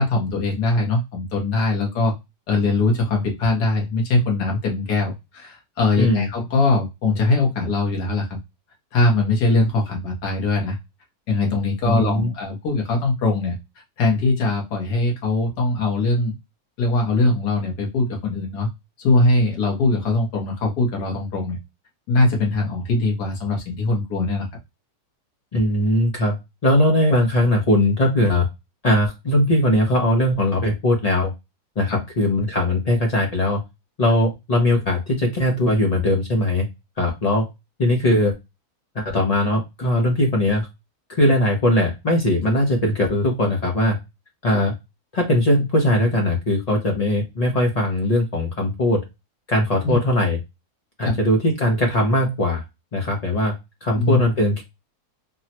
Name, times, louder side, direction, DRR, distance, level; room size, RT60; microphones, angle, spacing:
voice 1, 0.0-2.1 2.5-8.4 8.9-10.8 11.3-13.6 14.0-16.3 16.8-18.7 19.0-21.6 22.1-24.5 31.9-32.0 49.8-50.0 51.0-51.2 53.9-54.2, left 2 dB, 90° left, 0 dB, 1.5 m, -21 dB
voice 2, 6.0-6.3 11.8-12.3 25.5-26.3 26.6-28.5 28.8-31.3 31.8-33.6 34.0-36.7 37.0-37.5 37.8-38.3 38.9-40.7 41.1-44.0 44.4-44.7 45.1-49.0 49.5-50.4 51.0-52.6 52.9-53.5 53.8-54.6, left 1 dB, 70° left, 1 dB, 0.3 m, -20 dB
3.8 x 2.0 x 2.8 m, 0.22 s
omnidirectional pair, 1.7 m